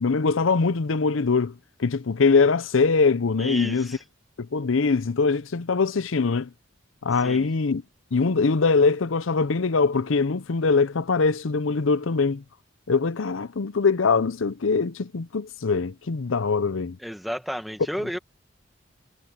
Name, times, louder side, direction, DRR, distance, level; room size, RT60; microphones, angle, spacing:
voice 1, 0.0-1.5 1.8-4.0 4.4-6.5 7.0-7.8 8.1-12.4 12.9-17.0, left 4 dB, 85° left, 0.7 m, -22 dB
voice 2, 3.4-4.0 7.2-7.5 17.0-18.2, equal, ahead, 1.5 m, -32 dB
head